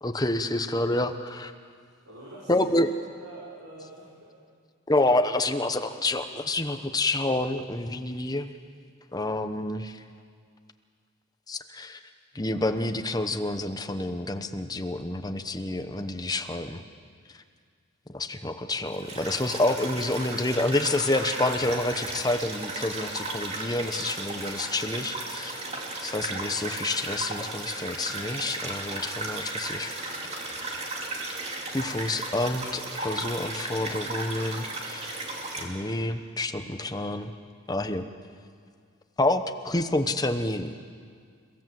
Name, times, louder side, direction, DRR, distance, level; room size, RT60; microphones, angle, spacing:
voice 1, 0.0-1.5 2.5-2.9 4.9-8.5 9.1-10.0 11.5-12.0 12.3-16.8 18.1-25.5 26.0-30.0 31.7-35.2 35.6-37.3 37.7-38.0 39.2-40.7, left 2 dB, 20° left, 8 dB, 0.9 m, -28 dB
voice 2, 2.0-2.7 3.2-4.3 25.5-25.8, right 1 dB, 90° right, -7 dB, 5.7 m, -45 dB
sound 1, 18.9-35.6, right 2 dB, 30° right, 2.6 m, -35 dB
30.0 x 16.5 x 7.7 m, 2.1 s
head